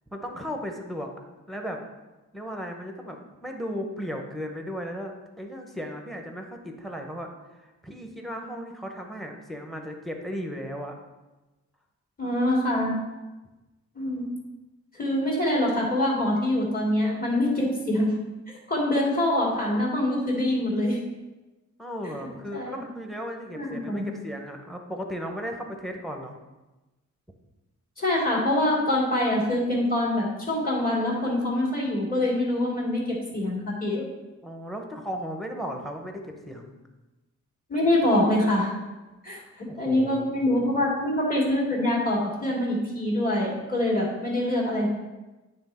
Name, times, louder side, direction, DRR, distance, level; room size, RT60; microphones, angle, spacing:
voice 1, 0.1-1.1 1.5-1.8 2.3-10.9 21.8-26.4 34.4-36.8 39.7-40.7, equal, ahead, 3 dB, 0.8 m, -36 dB
voice 2, 12.2-12.9 14.0-14.2 14.9-18.1 18.5-21.0 22.5-22.8 23.5-24.0 28.0-34.0 37.7-38.7 39.2-39.4 39.8-44.9, left 1 dB, 30° left, -4 dB, 2.2 m, -25 dB
9.6 x 3.4 x 4.3 m, 1.1 s
wide cardioid pair, 120°, 30 cm